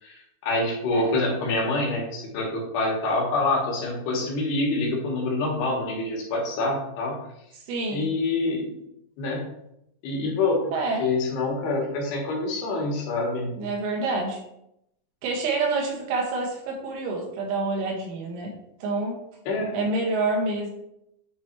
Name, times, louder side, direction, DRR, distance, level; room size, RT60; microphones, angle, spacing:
voice 1, 0.0-7.2 7.9-8.7 9.2-9.4 10.0-13.5 19.5-19.8, left 2 dB, 65° left, -1 dB, 2.7 m, -26 dB
voice 2, 7.5-8.1 10.7-11.0 13.6-14.4 15.2-18.5 18.8-19.2 19.7-20.7, right 3 dB, 85° right, -1 dB, 4.3 m, -27 dB
9.1 x 3.3 x 4.5 m, 0.80 s
omnidirectional pair, 6.0 m